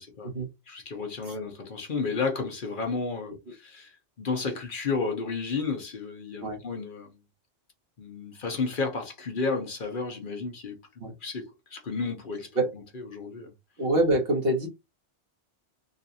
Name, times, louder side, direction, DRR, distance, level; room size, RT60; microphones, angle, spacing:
voice 1, 0.7-7.2 8.0-10.8 11.2-12.5 12.9-13.5, left 4 dB, 50° left, 0.9 m, -32 dB
voice 2, 13.8-14.7, right 1 dB, 60° right, 1.5 m, -25 dB
3.8 x 2.5 x 2.6 m
omnidirectional pair, 1.2 m